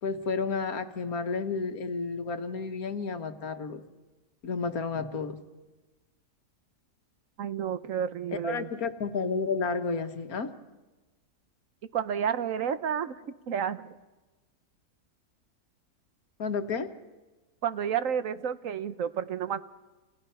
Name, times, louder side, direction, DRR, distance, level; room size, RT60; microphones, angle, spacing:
voice 1, 0.0-3.8 4.4-5.4 8.4-10.5 16.4-16.9, left 4 dB, 70° left, 8 dB, 1.8 m, -31 dB
voice 2, 7.4-8.7 11.9-13.1 13.5-13.9 17.6-19.6, right 8 dB, 60° right, 12 dB, 1.3 m, -30 dB
29.0 x 29.0 x 5.7 m, 1.2 s
omnidirectional pair, 1.6 m